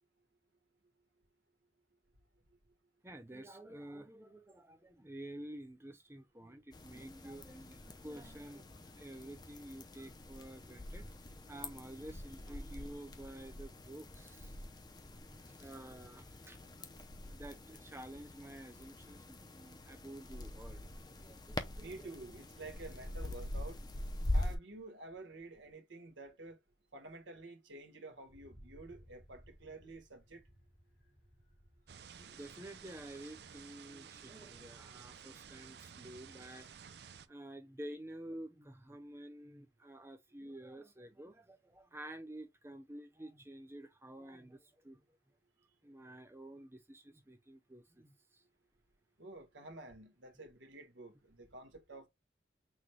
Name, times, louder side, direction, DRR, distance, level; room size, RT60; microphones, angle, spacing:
voice 1, 3.0-14.7 15.3-16.9 17.2-22.1 32.2-36.7 37.3-45.0 45.8-48.4, right 1 dB, 15° right, 0.7 m, -50 dB
sound 1, 6.7-24.6, left 1 dB, 20° left, 0.5 m, -44 dB
voice 2, 21.8-23.8 24.3-26.6 26.9-30.4 49.2-52.1, right 2 dB, 85° right, 1.3 m, -50 dB
Wind, 28.3-33.7, equal, 65° left, 2.3 m, -62 dB
sound 2, 31.9-37.3, right 7 dB, 60° right, 0.5 m, -54 dB
6.1 x 2.3 x 3.2 m
head